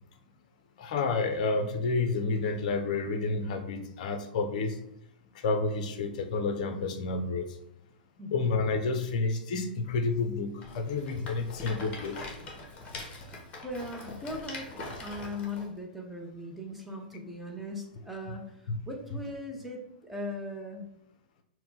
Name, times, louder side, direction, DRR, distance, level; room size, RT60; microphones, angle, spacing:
voice 1, 0.8-4.8 5.4-7.4 8.3-12.2 18.7-18.8, left 3 dB, 50° left, 7 dB, 0.5 m, -30 dB
voice 2, 8.2-8.5 13.6-14.7 15.0-18.5 18.9-20.9, left 1 dB, 5° right, -1 dB, 0.7 m, -39 dB
Rattle, 10.6-15.7, left 2 dB, 30° left, 0.9 m, -42 dB
4.4 x 2.1 x 3.9 m, 0.81 s
figure-of-eight pair, 100°, 5 cm